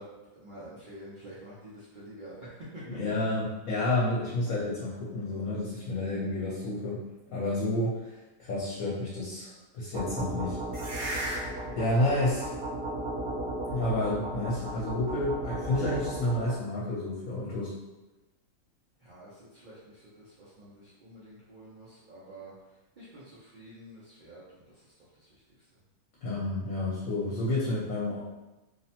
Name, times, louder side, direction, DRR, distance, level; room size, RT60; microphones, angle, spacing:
voice 1, 0.0-3.2 19.0-22.5 23.0-25.7, right 1 dB, 90° right, -9 dB, 0.4 m, -48 dB
voice 2, 2.8-7.0 7.3-10.6 10.8-11.5 11.8-12.5 13.7-17.7 26.2-28.2, left 1 dB, 70° left, -7 dB, 1.0 m, -30 dB
sound 1, 9.9-16.5, right 1 dB, 55° right, 0.7 m, -35 dB
2.7 x 2.0 x 2.7 m, 1.1 s
omnidirectional pair, 1.6 m